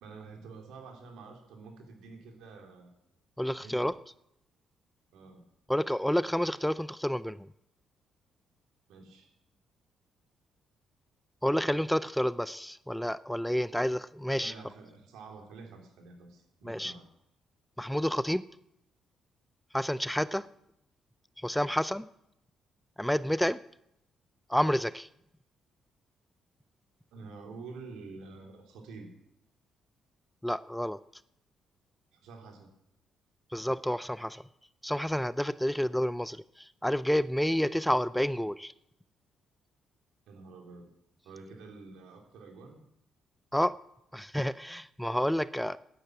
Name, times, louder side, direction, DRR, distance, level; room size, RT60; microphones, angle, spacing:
voice 1, 0.0-2.9 3.6-3.8 5.1-5.4 8.9-9.3 14.4-17.0 27.1-29.1 32.1-32.7 40.3-40.9 41.2-42.8, right 4 dB, 90° right, 3 dB, 3.0 m, -48 dB
voice 2, 3.4-3.9 5.7-7.5 11.4-14.5 16.6-16.9 17.8-18.5 19.7-20.5 21.4-22.1 23.0-23.6 24.5-25.1 30.4-31.0 33.5-34.4 34.8-38.7 43.5-43.7 44.1-45.8, equal, 5° left, 17 dB, 0.4 m, -29 dB
11.0 x 10.0 x 7.7 m, 0.79 s
cardioid pair, 90°, 0 cm